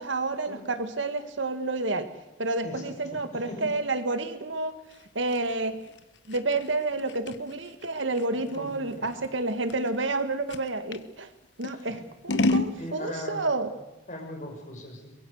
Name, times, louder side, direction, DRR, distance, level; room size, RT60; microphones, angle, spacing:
voice 1, 0.0-2.1 2.4-4.7 5.2-5.8 6.3-11.3 11.6-13.7, right 2 dB, 80° right, 9 dB, 1.8 m, -29 dB
voice 2, 2.6-3.7 8.6-9.1 11.7-12.0 12.8-13.5 14.1-15.1, left 1 dB, 40° left, 3 dB, 5.6 m, -39 dB
Scissors, 4.9-11.1 11.6-12.8, left 2 dB, 70° left, 1.2 m, -31 dB
24.0 x 21.5 x 6.5 m, 1.0 s
head